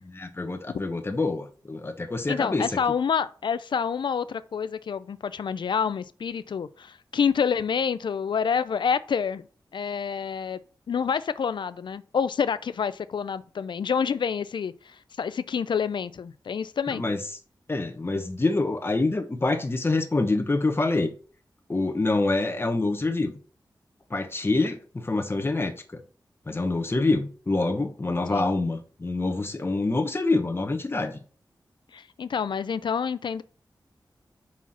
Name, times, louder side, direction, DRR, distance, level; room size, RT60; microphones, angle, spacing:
voice 1, 0.1-2.7 16.9-17.2 17.7-21.1 21.7-23.3 24.1-26.0 26.5-31.2, left 2 dB, 30° left, 1.2 m, -26 dB
voice 2, 2.3-9.5 9.7-10.6 10.9-17.0 28.3-28.5 31.9-33.4, left 6 dB, 80° left, 0.5 m, -28 dB
5.7 x 4.7 x 5.9 m
wide cardioid pair, 95°, 8 cm